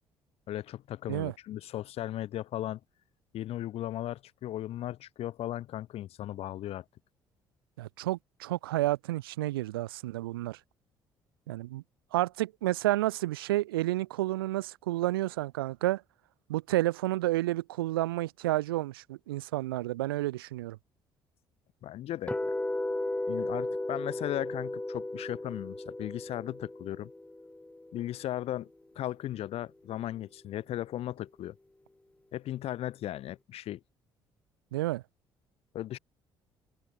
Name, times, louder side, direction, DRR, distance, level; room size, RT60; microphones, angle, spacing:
voice 1, 0.5-2.8 3.3-6.8 21.8-22.5 23.3-27.1 27.9-28.7 28.9-31.5 32.3-33.8 35.7-36.0, left 13 dB, 55° left, 1.2 m, -36 dB
voice 2, 7.8-10.6 11.5-11.8 12.1-16.0 16.5-20.8 34.7-35.0, right 16 dB, 75° right, 0.4 m, -30 dB
sound 1, 22.3-28.3, left 2 dB, 10° left, 1.3 m, -35 dB
figure-of-eight pair, 50°, 12 cm